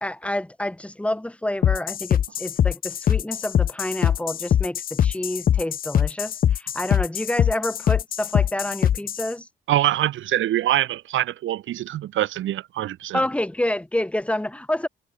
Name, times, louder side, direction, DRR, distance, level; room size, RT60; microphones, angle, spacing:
voice 1, 0.0-9.5 13.1-14.9, left 1 dB, 5° left, 1.2 m, -28 dB
sound 1, 1.6-9.3, left 9 dB, 45° left, 0.6 m, -22 dB
voice 2, 9.7-13.2, right 13 dB, 75° right, 1.8 m, -24 dB
cardioid pair, 90°, 20 cm